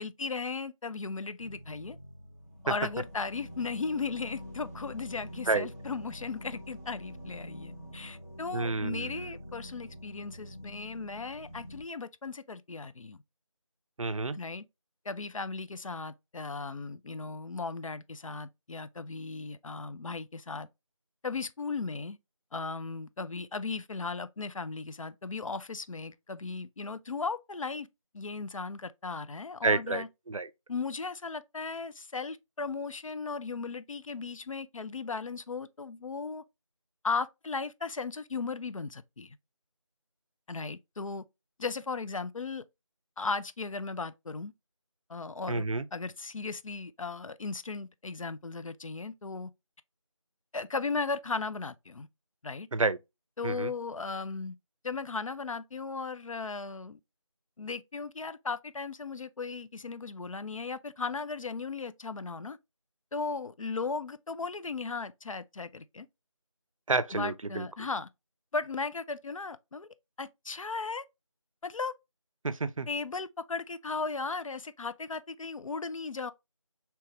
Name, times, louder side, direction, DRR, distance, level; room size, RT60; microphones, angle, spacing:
voice 1, 0.0-2.0 2.6-13.2 14.3-14.6 15.1-20.7 21.2-22.2 22.5-27.9 28.1-30.1 30.7-36.4 37.0-39.4 40.5-41.2 41.6-42.6 43.2-44.5 45.1-45.7 45.9-49.5 50.5-52.1 52.4-52.7 53.4-54.6 54.8-57.0 57.6-62.6 63.1-66.1 67.1-68.1 68.5-69.9 70.2-71.0 71.6-71.9 72.9-76.3, left 4 dB, 75° left, 0.4 m, -36 dB
sound 1, 1.4-11.8, equal, 30° left, 0.7 m, -46 dB
voice 2, 8.5-9.3 14.0-14.4 29.6-30.5 45.5-45.8 52.7-53.0 53.4-53.7 66.9-67.7 72.4-72.9, right 3 dB, 75° right, 0.5 m, -29 dB
3.4 x 2.9 x 3.0 m
figure-of-eight pair, 175°, 17 cm